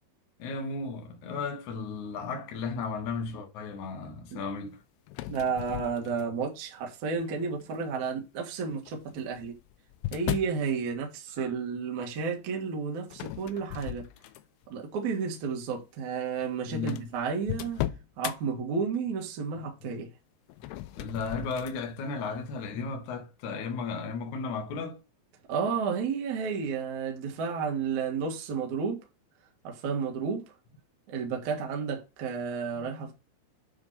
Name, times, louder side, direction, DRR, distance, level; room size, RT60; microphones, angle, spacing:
voice 1, 0.4-4.8 16.7-17.1 19.6-19.7 21.0-25.0, left 4 dB, 60° left, 2.1 m, -35 dB
sound 1, 5.1-6.5 7.2-7.6 8.7-10.6 13.1-14.7 15.1-15.4 16.2-16.3 16.4-16.5 16.9-18.4 20.5-21.8, left 15 dB, 85° left, 2.4 m, -37 dB
voice 2, 5.3-9.5 10.1-14.0 14.7-17.8 18.2-20.1 25.5-29.0 29.6-30.4 31.1-33.1, right 5 dB, 50° right, 2.6 m, -32 dB
9.8 x 3.7 x 4.2 m
omnidirectional pair, 5.4 m